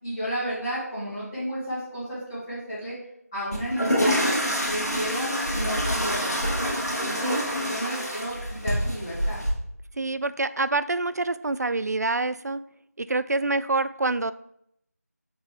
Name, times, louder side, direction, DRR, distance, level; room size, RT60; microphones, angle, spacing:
voice 1, 0.0-2.9 3.3-4.4 4.7-6.4 7.0-9.4, equal, 20° left, -15 dB, 1.8 m, -32 dB
sound 1, 3.5-9.5, equal, 70° left, 1.9 m, -26 dB
voice 2, 10.0-12.6 13.0-14.3, right 3 dB, 75° right, 14 dB, 0.4 m, -26 dB
6.7 x 4.3 x 3.5 m, 0.75 s
figure-of-eight pair, 170°, 9 cm